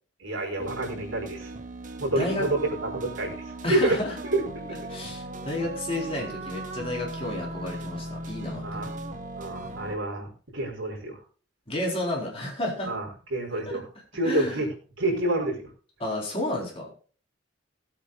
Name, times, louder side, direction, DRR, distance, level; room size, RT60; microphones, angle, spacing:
voice 1, 0.2-1.5 2.0-2.6 2.8-3.3 3.7-4.0 4.3-4.4 8.6-8.9 9.4-11.2 12.8-13.9 14.1-15.7, right 2 dB, 85° right, 1 dB, 4.7 m, -28 dB
sound 1, 0.6-10.0, right 2 dB, 40° right, 1.2 m, -38 dB
voice 2, 2.2-2.5 3.6-4.2 4.9-8.9 11.7-13.0 13.5-13.8 14.2-14.6 16.0-16.9, left 1 dB, 30° left, -2 dB, 4.1 m, -31 dB
20.0 x 8.5 x 2.4 m, 0.39 s
head